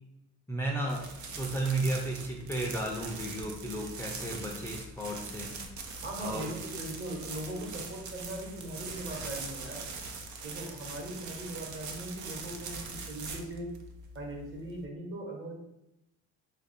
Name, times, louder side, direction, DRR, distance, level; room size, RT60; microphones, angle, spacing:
voice 1, 0.5-5.6 6.2-6.5, right 2 dB, 10° left, -1 dB, 0.5 m, -34 dB
sound 1, 0.9-14.8, right 4 dB, 70° right, 0.6 m, -42 dB
voice 2, 6.0-9.9 10.4-13.7 14.1-15.5, right 1 dB, 45° right, -1 dB, 1.2 m, -40 dB
3.0 x 2.6 x 4.2 m, 0.87 s
cardioid pair, 90°, 30 cm